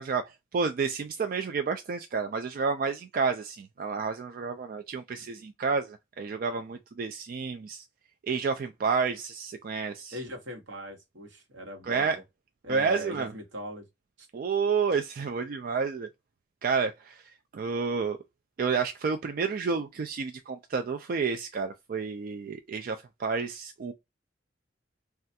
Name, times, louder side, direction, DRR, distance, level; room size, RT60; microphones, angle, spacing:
voice 1, 0.0-7.9 8.3-10.2 11.8-12.2 12.7-13.3 14.3-16.1 16.6-18.2 18.6-23.9, right 5 dB, 50° right, 0.3 m, -30 dB
voice 2, 10.1-12.2 12.6-13.8 14.2-14.3, equal, 80° right, 1.1 m, -40 dB
3.3 x 2.3 x 2.6 m
head